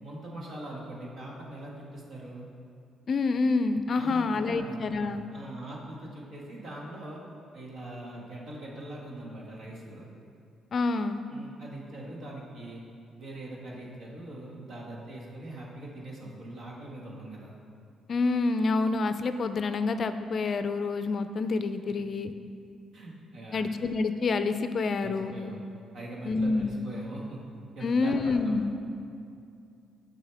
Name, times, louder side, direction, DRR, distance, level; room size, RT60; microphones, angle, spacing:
voice 1, 0.0-2.5 3.9-4.8 5.3-7.2 7.5-10.1 11.3-12.8 13.2-17.6 22.9-23.6 25.0-25.6 25.9-27.4 27.7-28.6, right 1 dB, 70° right, -3 dB, 1.6 m, -42 dB
voice 2, 3.1-5.3 10.7-11.2 18.1-22.3 23.5-25.3 26.3-26.8 27.8-28.7, left 3 dB, 50° left, 10 dB, 0.4 m, -27 dB
9.1 x 6.1 x 3.4 m, 2.5 s
cardioid pair, 90°, 0 cm